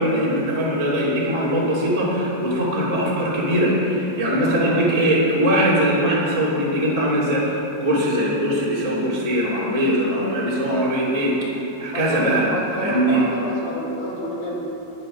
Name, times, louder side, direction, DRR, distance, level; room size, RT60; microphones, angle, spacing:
voice 1, 0.0-11.3 11.8-12.5 12.7-13.2, equal, 10° right, -7 dB, 1.8 m, -21 dB
voice 2, 4.4-4.8 11.9-14.6, left 1 dB, 50° left, -4 dB, 2.7 m, -29 dB
20.0 x 7.5 x 6.2 m, 3.0 s
omnidirectional pair, 5.1 m